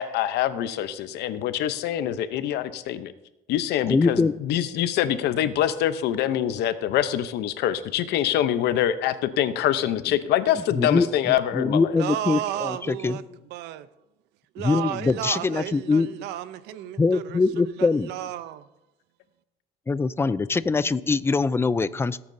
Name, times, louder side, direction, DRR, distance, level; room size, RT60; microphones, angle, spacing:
voice 1, 0.0-3.1 3.5-11.9, left 11 dB, 80° left, 0.7 m, -25 dB
voice 2, 3.9-4.3 10.7-13.2 14.6-16.1 17.0-18.1 19.9-22.2, left 4 dB, 15° left, 0.3 m, -23 dB
voice 3, 12.0-13.2 13.5-13.9 14.5-18.7, right 12 dB, 90° right, 0.6 m, -33 dB
17.0 x 8.7 x 2.7 m
cardioid pair, 110°, 17 cm